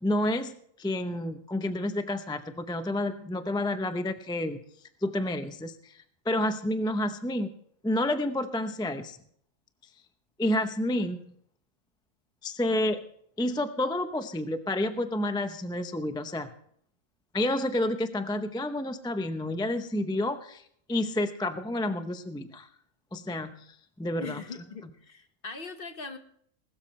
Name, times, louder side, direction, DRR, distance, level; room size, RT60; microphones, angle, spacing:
voice 1, 0.0-4.6 5.0-7.5 7.8-9.2 10.4-11.2 12.4-13.0 13.4-16.5 17.3-20.6 20.9-22.7 23.1-24.4, left 1 dB, 5° left, 9 dB, 0.5 m, -30 dB
voice 2, 24.2-26.2, left 4 dB, 40° left, 7 dB, 1.4 m, -41 dB
20.0 x 13.0 x 3.2 m, 0.65 s
omnidirectional pair, 1.4 m